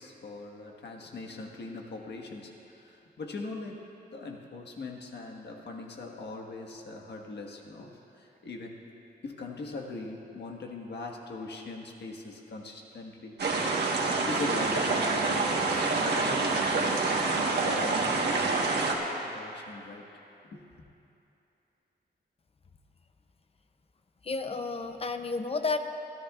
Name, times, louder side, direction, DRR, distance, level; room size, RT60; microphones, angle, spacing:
voice 1, 0.0-8.8 9.2-13.4 14.2-17.1 17.4-18.6 19.2-20.1 20.4-20.6, left 3 dB, 75° left, 0 dB, 1.5 m, -41 dB
sound 1, 13.4-18.9, right 3 dB, 70° right, 1.4 m, -27 dB
voice 2, 24.2-25.8, left 3 dB, 35° left, 8 dB, 0.6 m, -31 dB
23.5 x 13.5 x 2.4 m, 2.9 s
wide cardioid pair, 150°, 18 cm